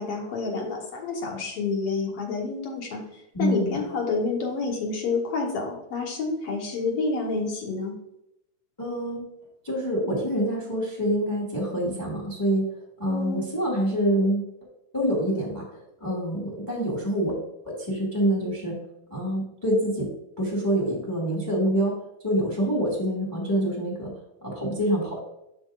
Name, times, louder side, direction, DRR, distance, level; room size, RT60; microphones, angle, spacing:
voice 1, 0.0-7.9 13.1-13.5, left 4 dB, 60° left, 1 dB, 2.0 m, -29 dB
voice 2, 3.3-3.8 8.8-9.3 9.6-12.6 13.0-14.4 14.9-17.4 17.6-18.8 19.1-20.1 20.4-21.9 22.2-24.1 24.4-25.2, equal, 10° left, -2 dB, 1.0 m, -26 dB
12.0 x 4.3 x 2.4 m, 0.83 s
omnidirectional pair, 3.4 m